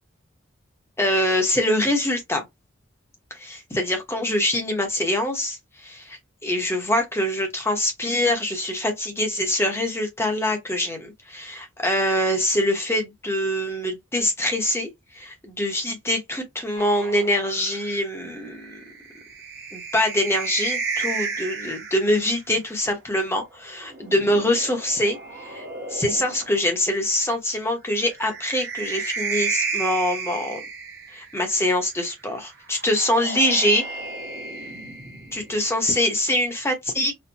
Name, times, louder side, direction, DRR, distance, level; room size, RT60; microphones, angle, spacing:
voice 1, 1.0-2.4 3.3-18.8 19.7-25.6 25.9-30.6 31.1-33.8 35.3-37.1, left 1 dB, 15° left, 0.9 m, -24 dB
sound 1, 16.8-22.3 23.7-26.7 28.0-31.5 32.7-35.7, right 4 dB, 55° right, 0.9 m, -33 dB
4.4 x 2.1 x 2.7 m
head